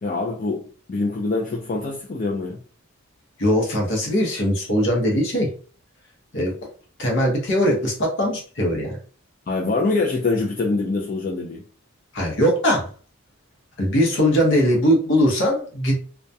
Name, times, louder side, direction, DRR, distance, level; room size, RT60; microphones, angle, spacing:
voice 1, 0.0-0.6 0.9-2.6 9.5-11.6, left 3 dB, 40° left, 0.3 m, -24 dB
voice 2, 3.4-5.5 6.3-6.5 7.0-8.9 12.1-12.9 13.8-16.0, equal, 55° left, 0.8 m, -20 dB
2.6 x 2.2 x 2.2 m
head